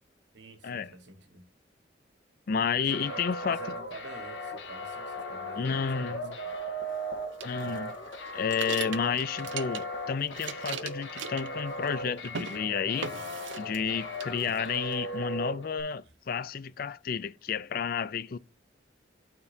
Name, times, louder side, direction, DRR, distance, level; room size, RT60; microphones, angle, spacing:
voice 1, 0.3-1.5 2.8-6.5, right 3 dB, 70° right, 1.6 m, -47 dB
voice 2, 2.5-3.6 5.6-6.4 7.4-7.9 8.3-13.1 13.6-18.4, left 6 dB, 50° left, 0.4 m, -31 dB
sound 1, 2.9-15.8, equal, 75° left, 1.7 m, -38 dB
sound 2, 7.4-10.0 10.3-12.0 12.2-12.6 13.0-13.9 14.2-15.0, right 6 dB, 90° right, 0.7 m, -39 dB
12.0 x 4.5 x 2.7 m
head